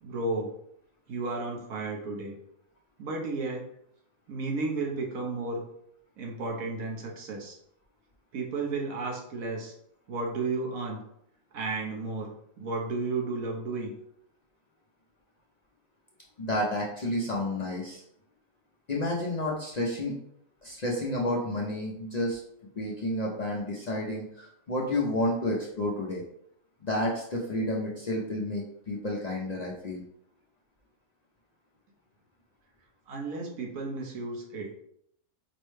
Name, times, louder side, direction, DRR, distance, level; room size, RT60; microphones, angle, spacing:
voice 1, 0.0-0.5 1.1-2.3 3.0-3.6 4.3-5.6 6.2-7.6 8.3-9.7 10.1-11.0 11.5-13.9 33.1-34.7, right 3 dB, 85° right, -1 dB, 1.3 m, -33 dB
voice 2, 16.4-18.0 18.9-20.2 20.6-22.4 22.8-26.2 26.8-30.0, left 1 dB, 55° left, -3 dB, 0.4 m, -30 dB
5.1 x 2.1 x 3.2 m, 0.72 s
omnidirectional pair, 1.4 m